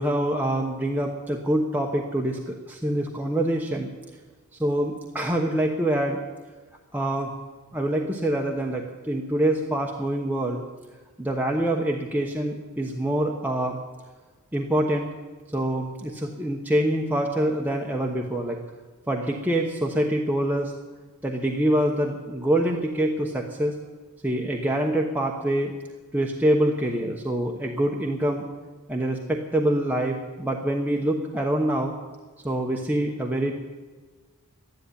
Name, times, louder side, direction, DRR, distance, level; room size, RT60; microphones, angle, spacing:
voice 1, 0.0-3.9 4.6-6.2 6.9-7.3 7.7-10.6 11.2-13.8 14.5-15.1 15.5-18.6 19.1-20.7 21.2-23.7 24.2-25.7 26.1-28.5 28.9-31.9 32.4-33.5, right 1 dB, 10° right, 0 dB, 1.0 m, -25 dB
13.0 x 10.5 x 9.9 m, 1.3 s
head